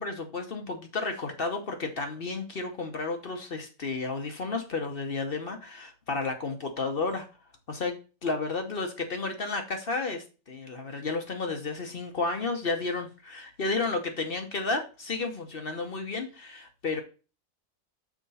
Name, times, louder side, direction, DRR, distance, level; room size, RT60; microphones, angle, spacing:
voice 1, 0.0-7.2 7.7-17.0, left 3 dB, 45° left, 5 dB, 1.0 m, -32 dB
6.2 x 4.4 x 4.1 m, 0.33 s
omnidirectional pair, 1.5 m